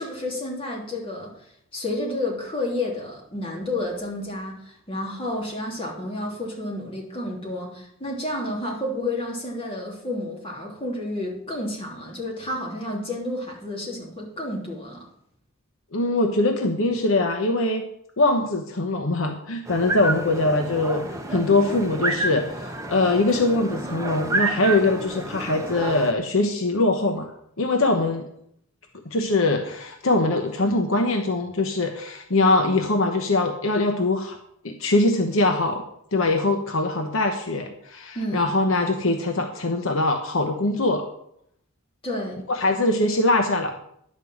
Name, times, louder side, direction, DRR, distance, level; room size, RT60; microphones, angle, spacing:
voice 1, 0.0-1.3 1.7-15.0 38.1-38.4 42.0-42.4, left 1 dB, 25° left, -3 dB, 3.2 m, -30 dB
voice 2, 15.9-17.8 18.2-21.0 21.3-28.3 29.0-34.4 34.6-35.8 36.1-41.0 42.5-43.8, left 2 dB, 65° left, 4 dB, 1.0 m, -22 dB
sound 1, 19.7-26.1, right 2 dB, 15° right, 0.9 m, -29 dB
11.0 x 5.4 x 7.8 m, 0.74 s
head